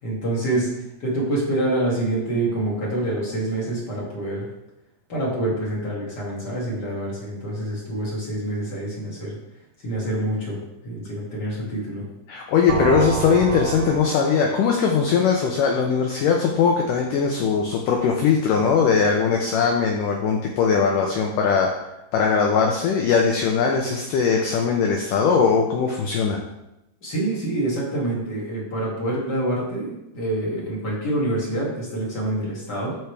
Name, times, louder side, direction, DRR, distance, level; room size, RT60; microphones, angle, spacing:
voice 1, 0.0-4.5 5.1-9.4 9.8-10.6 10.8-12.0 27.0-33.0, right 1 dB, 30° left, -5 dB, 2.2 m, -26 dB
voice 2, 12.3-21.7 22.1-26.4, left 6 dB, 90° left, 1 dB, 1.8 m, -20 dB
sound 1, 12.7-16.4, right 7 dB, 85° right, 2.9 m, -29 dB
13.5 x 4.6 x 3.4 m, 0.90 s
omnidirectional pair, 4.7 m